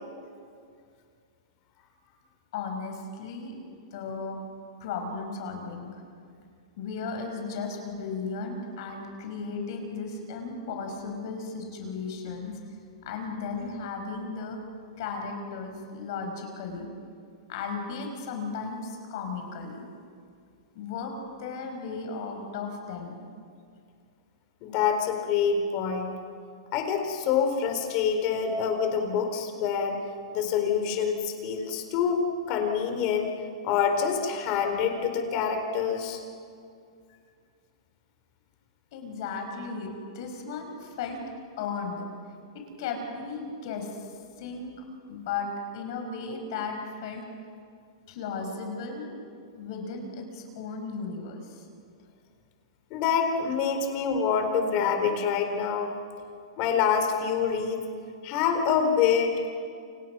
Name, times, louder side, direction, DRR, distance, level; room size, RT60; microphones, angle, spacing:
voice 1, 2.5-3.5 3.9-4.4 4.8-5.9 6.8-12.6 13.1-14.6 15.0-16.9 17.5-19.9 20.8-21.1 21.4-23.2 38.9-41.2 41.6-42.0 42.8-47.2 48.1-49.2 49.5-51.6, left 4 dB, 50° left, 4 dB, 5.6 m, -35 dB
voice 2, 24.6-26.1 26.7-30.0 30.3-32.2 32.5-33.3 33.6-36.2 52.9-55.9 56.6-57.8 58.2-59.5, left 7 dB, 35° left, 5 dB, 4.1 m, -26 dB
29.5 x 27.5 x 6.2 m, 2.3 s
hypercardioid pair, 160°, 3 cm